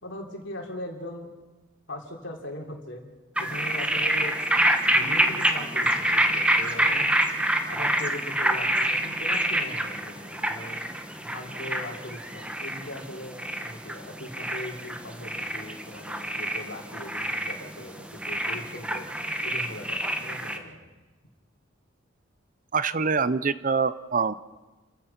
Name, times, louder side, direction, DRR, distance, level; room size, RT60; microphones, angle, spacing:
voice 1, 0.0-1.3 1.9-3.0 3.4-4.4 4.9-7.1 7.7-10.8 11.2-19.1 19.4-20.9, left 1 dB, 65° left, 1 dB, 3.6 m, -40 dB
sound 1, 3.4-20.6, right 1 dB, 5° right, 1.2 m, -27 dB
voice 2, 22.7-24.3, right 5 dB, 40° right, 15 dB, 0.6 m, -25 dB
30.0 x 14.5 x 5.9 m, 1.2 s
head